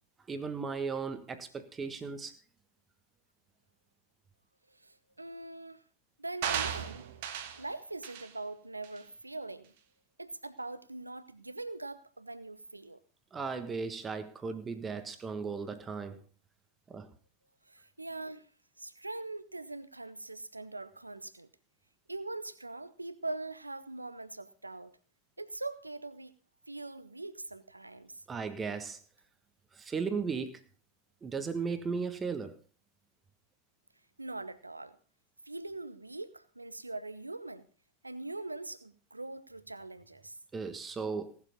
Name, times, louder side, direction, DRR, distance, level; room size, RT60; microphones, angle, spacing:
voice 1, 0.3-2.3 13.3-16.2 16.9-17.1 28.3-29.0 29.7-30.6 31.2-32.6 40.5-41.4, right 5 dB, 20° right, 1.4 m, -36 dB
voice 2, 4.7-5.8 6.2-7.0 7.5-9.7 10.2-13.0 17.7-18.5 18.8-21.5 22.1-25.0 25.4-26.3 26.7-28.2 34.2-35.0 35.4-37.7 38.0-40.4, right 2 dB, 85° right, 0.9 m, -42 dB
sound 1, 6.4-7.6 8.0-8.3 8.8-9.0, right 9 dB, 50° right, 1.5 m, -35 dB
18.0 x 7.2 x 5.2 m
figure-of-eight pair, 90°, 0 cm